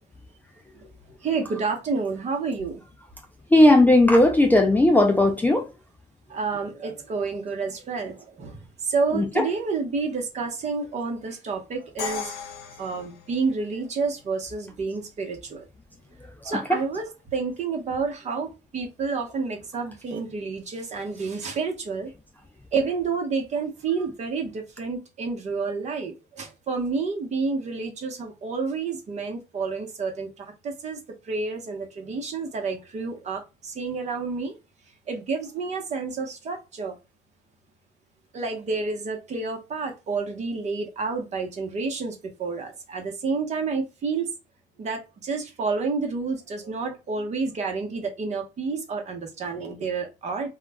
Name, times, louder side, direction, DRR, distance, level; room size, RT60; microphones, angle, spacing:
voice 1, 1.2-2.8 6.3-12.4 12.8-15.7 16.4-22.1 22.7-31.0 31.2-34.5 35.1-37.0 38.3-44.3 44.8-50.5, right 4 dB, 40° right, 0.8 m, -29 dB
voice 2, 3.5-5.6 9.2-9.4 16.5-16.8, left 1 dB, 10° left, 0.3 m, -17 dB
Crash cymbal, 12.0-13.9, left 7 dB, 80° left, 0.7 m, -36 dB
2.3 x 2.1 x 3.4 m
cardioid pair, 110°, 17 cm